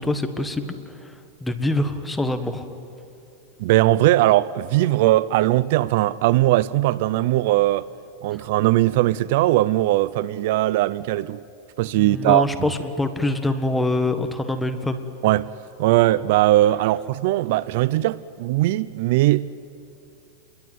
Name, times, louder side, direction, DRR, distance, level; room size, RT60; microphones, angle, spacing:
voice 1, 0.0-2.6 11.9-15.0, left 2 dB, 5° left, 1.6 m, -25 dB
voice 2, 3.6-7.9 8.2-11.4 11.8-12.7 15.2-15.5 15.8-19.5, right 16 dB, 60° right, 0.6 m, -19 dB
28.5 x 22.0 x 9.4 m
supercardioid pair, 145°, 0 cm